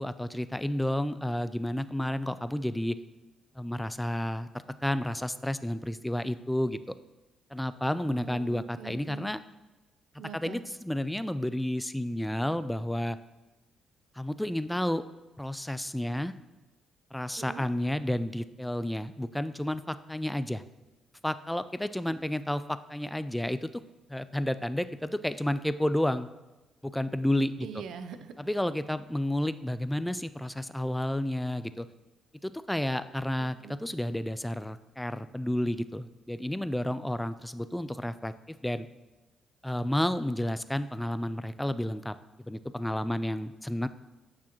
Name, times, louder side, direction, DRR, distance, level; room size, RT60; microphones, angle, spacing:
voice 1, 0.0-3.0 3.6-4.5 4.8-6.8 7.5-9.4 10.1-13.2 14.2-15.0 15.4-16.3 17.1-20.6 21.2-23.8 24.1-26.3 26.8-27.7 28.4-31.9 32.4-38.9 39.6-42.2 42.5-43.9, left 1 dB, 5° left, 13 dB, 0.3 m, -31 dB
voice 2, 8.0-9.3 10.2-10.6 17.4-17.6 22.1-22.2 27.6-28.5 33.4-33.8, right 7 dB, 80° right, 10 dB, 0.5 m, -44 dB
8.6 x 6.1 x 3.0 m, 1.1 s
cardioid pair, 90°, 0 cm